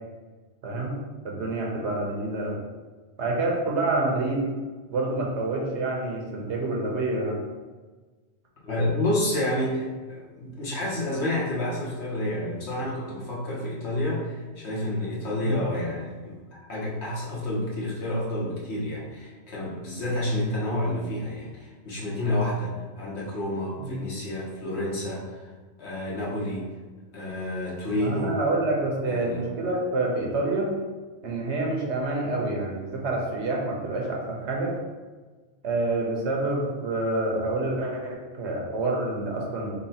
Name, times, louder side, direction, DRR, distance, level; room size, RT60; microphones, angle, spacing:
voice 1, 0.6-1.0 1.2-2.6 3.2-4.5 4.9-7.4 15.4-15.6 23.8-24.0 28.0-30.7 31.2-34.7 35.6-39.7, right 2 dB, 75° right, -1 dB, 1.1 m, -27 dB
voice 2, 8.6-16.4 16.7-25.5 25.8-26.7 27.1-28.4 29.0-29.4, left 1 dB, 65° left, -5 dB, 1.3 m, -29 dB
4.0 x 2.2 x 4.0 m, 1.3 s
omnidirectional pair, 1.2 m